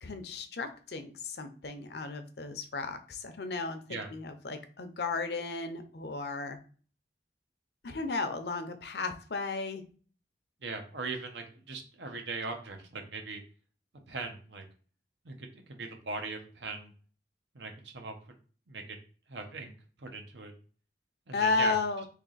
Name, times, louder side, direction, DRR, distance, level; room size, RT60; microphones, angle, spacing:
voice 1, 0.0-6.6 7.8-9.8 21.3-22.1, left 4 dB, 70° left, 8 dB, 0.6 m, -34 dB
voice 2, 10.6-13.4 14.1-14.7 15.2-16.9 17.5-18.2 18.7-19.0 19.3-19.7 20.0-20.5 21.3-21.7, right 3 dB, 85° right, 4 dB, 0.9 m, -39 dB
3.4 x 2.9 x 3.9 m, 0.40 s
head